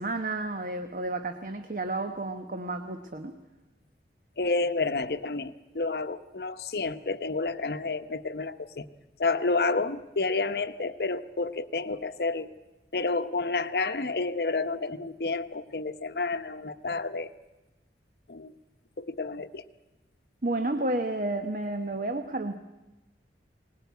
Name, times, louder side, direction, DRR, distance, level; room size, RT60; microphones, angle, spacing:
voice 1, 0.0-3.4 20.4-22.6, right 2 dB, 50° right, 7 dB, 1.0 m, -31 dB
voice 2, 4.4-8.9 9.2-12.5 12.9-17.3 18.3-18.5 19.0-19.6, left 3 dB, 65° left, 11 dB, 0.8 m, -30 dB
20.5 x 19.0 x 9.4 m, 1.0 s
head